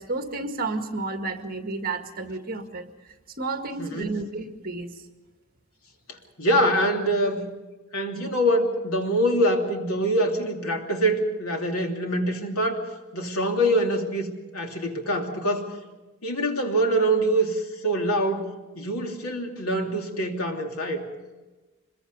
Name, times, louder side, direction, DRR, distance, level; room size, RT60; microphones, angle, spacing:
voice 1, 0.0-5.0, right 3 dB, 45° right, 5 dB, 1.9 m, -32 dB
voice 2, 3.8-4.2 6.1-7.4 7.9-12.8 13.1-15.7 16.2-21.0, right 1 dB, 85° left, 2 dB, 3.0 m, -25 dB
25.5 x 22.0 x 5.5 m, 1.2 s
head